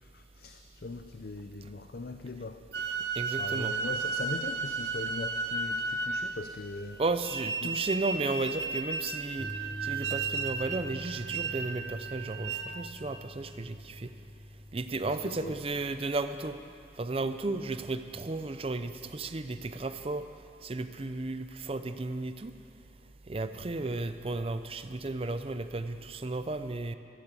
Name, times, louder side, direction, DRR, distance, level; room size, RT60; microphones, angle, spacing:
voice 1, 0.0-2.6 3.4-7.0 7.6-7.7 15.0-15.6, left 3 dB, 60° left, 7 dB, 0.5 m, -40 dB
sound 1, 2.7-6.5 7.2-12.9, right 4 dB, 75° right, 0.8 m, -34 dB
voice 2, 3.2-3.8 7.0-14.1 14.7-16.6 17.0-20.3 20.6-22.5 23.3-27.0, right 3 dB, 35° right, 10 dB, 0.6 m, -34 dB
Bass guitar, 9.4-15.6, left 1 dB, 10° left, 1.0 m, -45 dB
13.5 x 12.0 x 7.4 m, 2.7 s
head